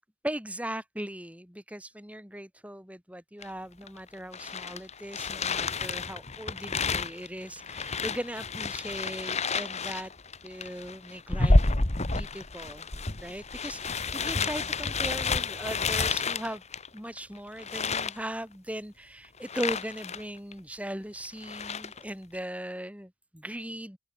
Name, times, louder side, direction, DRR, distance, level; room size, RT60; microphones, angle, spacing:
voice 1, 0.2-10.1 10.4-11.7 12.1-12.9 13.2-16.6 16.9-24.0, right 1 dB, 5° right, 6.3 m, -38 dB
sound 1, 3.4-3.5 3.9-17.2 17.6-18.2 19.4-20.2 20.5-20.6 21.2-22.0, left 3 dB, 30° left, 1.5 m, -30 dB
open air
head